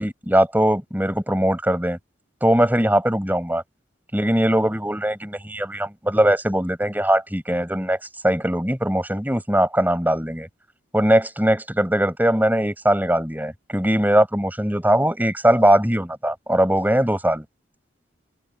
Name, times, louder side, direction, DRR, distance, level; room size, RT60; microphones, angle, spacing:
voice 1, 0.0-2.0 2.4-3.6 4.1-8.0 8.2-10.5 10.9-17.4, right 1 dB, 10° right, 7.8 m, -20 dB
open air
head